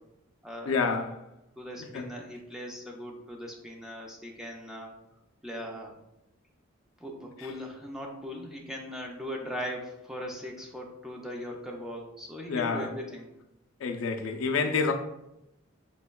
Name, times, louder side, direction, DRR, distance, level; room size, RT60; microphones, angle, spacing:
voice 1, 0.6-1.3 1.8-2.1 7.4-7.5 12.5-13.0 13.8-14.9, left 4 dB, 70° left, 0.4 m, -29 dB
voice 2, 1.6-4.9 5.4-5.9 7.0-13.3, equal, ahead, 0.4 m, -39 dB
5.1 x 2.1 x 2.2 m
head